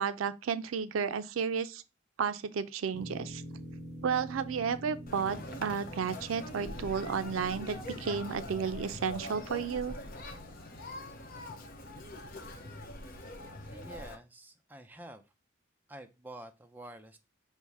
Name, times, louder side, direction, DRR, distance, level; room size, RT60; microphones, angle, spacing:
voice 1, 0.0-1.8 2.2-3.4 4.0-10.0, right 6 dB, 85° right, 0.4 m, -32 dB
sound 1, 2.9-10.1, equal, 55° right, 2.3 m, -46 dB
Conversation, 5.1-14.1, left 1 dB, 45° left, 0.7 m, -44 dB
voice 2, 13.7-15.2 15.9-17.2, right 1 dB, 10° right, 0.4 m, -48 dB
5.5 x 2.1 x 4.6 m
head